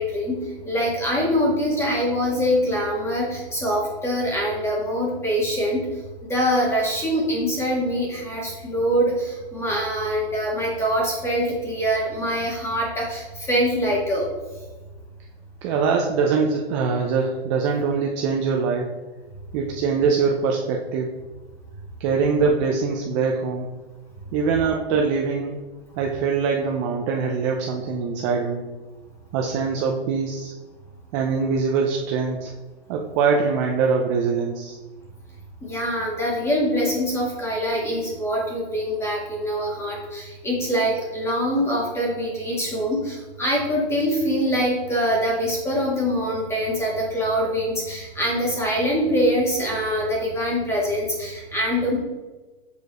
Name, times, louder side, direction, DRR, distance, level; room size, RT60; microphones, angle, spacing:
voice 1, 0.0-5.9 6.3-14.3 35.6-52.0, equal, 10° left, -3 dB, 1.6 m, -24 dB
voice 2, 15.6-19.0 19.5-21.1 22.0-23.7 24.3-25.6 26.0-28.7 29.3-30.5 31.1-32.5 32.9-34.8, right 5 dB, 30° right, 1 dB, 0.5 m, -23 dB
6.6 x 4.6 x 3.1 m, 1.2 s
hypercardioid pair, 140°, 31 cm